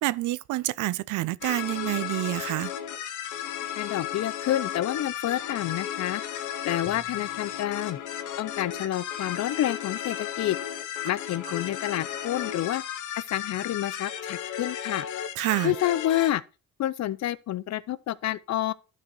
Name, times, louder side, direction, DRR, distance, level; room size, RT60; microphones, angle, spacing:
voice 1, 0.0-2.7 15.4-15.7, right 17 dB, 80° right, 0.5 m, -28 dB
sound 1, 1.4-16.3, left 10 dB, 85° left, 1.0 m, -34 dB
voice 2, 3.8-6.2 6.6-8.0 8.4-10.6 11.0-12.8 13.1-15.1 15.6-16.4 16.8-18.7, left 13 dB, 65° left, 0.6 m, -28 dB
Drum, 6.9-9.2, right 1 dB, 5° right, 2.2 m, -54 dB
11.5 x 4.8 x 4.4 m
cardioid pair, 90°, 30 cm